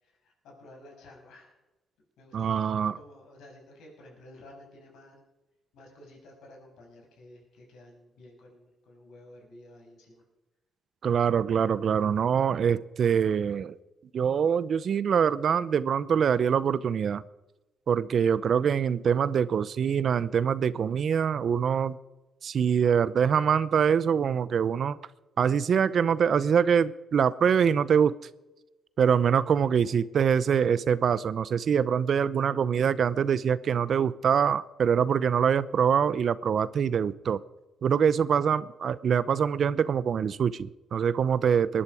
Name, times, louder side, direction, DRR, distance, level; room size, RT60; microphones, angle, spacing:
voice 1, 0.0-1.6 2.2-2.7 2.9-5.2 5.7-10.2, left 1 dB, 85° left, 0 dB, 6.4 m, -52 dB
voice 2, 2.3-3.0 11.0-13.8 14.1-17.2 17.9-22.0 22.4-25.0 25.4-28.2 29.0-37.4 37.8-41.8, right 7 dB, 55° right, 17 dB, 0.6 m, -24 dB
20.0 x 11.5 x 4.9 m, 1.1 s
cardioid pair, 90°, 0 cm